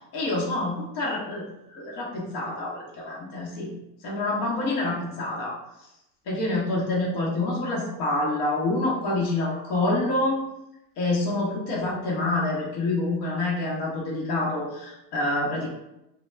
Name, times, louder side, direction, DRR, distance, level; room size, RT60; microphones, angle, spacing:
voice 1, 0.1-1.4 1.7-3.7 4.0-5.6 6.3-10.4 11.0-15.7, left 2 dB, 45° left, -3 dB, 0.9 m, -27 dB
2.2 x 2.1 x 3.1 m, 0.87 s
supercardioid pair, 110°, 50 cm